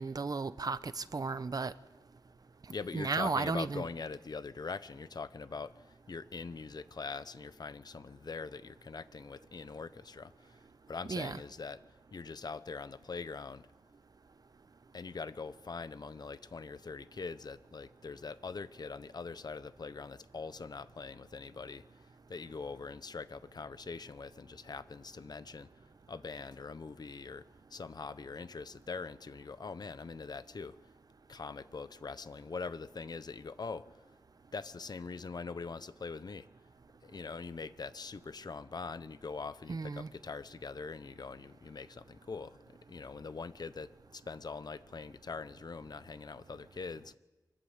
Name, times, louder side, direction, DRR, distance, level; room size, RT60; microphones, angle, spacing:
voice 1, 0.0-1.7 2.9-3.8 11.1-11.4 39.7-40.1, right 4 dB, 60° right, 14 dB, 0.8 m, -34 dB
voice 2, 2.7-11.8 12.1-13.7 14.9-25.7 26.1-30.8 31.3-34.0 34.5-36.5 37.0-47.1, left 4 dB, 65° left, 14 dB, 0.9 m, -43 dB
24.5 x 19.5 x 8.1 m, 1.2 s
wide cardioid pair, 85°, 7 cm